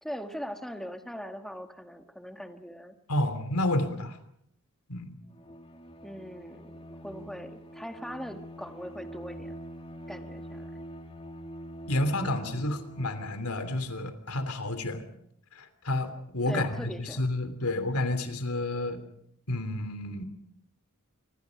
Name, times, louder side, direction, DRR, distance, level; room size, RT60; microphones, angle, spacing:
voice 1, 0.0-2.9 6.0-9.6 10.1-10.8 16.5-17.3, equal, ahead, 6 dB, 1.8 m, -41 dB
voice 2, 3.1-4.2 4.9-5.1 11.9-15.0 15.5-19.0 19.5-20.2, left 1 dB, 90° left, 10 dB, 3.2 m, -30 dB
Bowed string instrument, 5.3-13.8, equal, 25° left, 2.3 m, -45 dB
27.0 x 24.5 x 5.2 m, 0.71 s
head